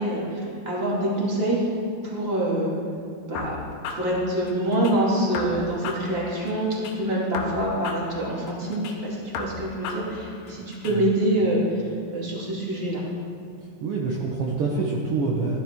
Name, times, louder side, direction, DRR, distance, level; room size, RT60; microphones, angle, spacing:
voice 1, 0.0-1.6 2.0-2.7 3.3-3.6 3.9-11.8 12.1-13.0, right 1 dB, 20° right, -5 dB, 2.1 m, -25 dB
sound 1, 3.4-5.0 5.3-7.0 7.3-9.0 9.3-11.0, left 4 dB, 75° left, 2.5 m, -35 dB
voice 2, 13.8-15.6, right 4 dB, 70° right, -3 dB, 1.3 m, -26 dB
15.5 x 12.5 x 3.7 m, 2.3 s
omnidirectional pair, 4.0 m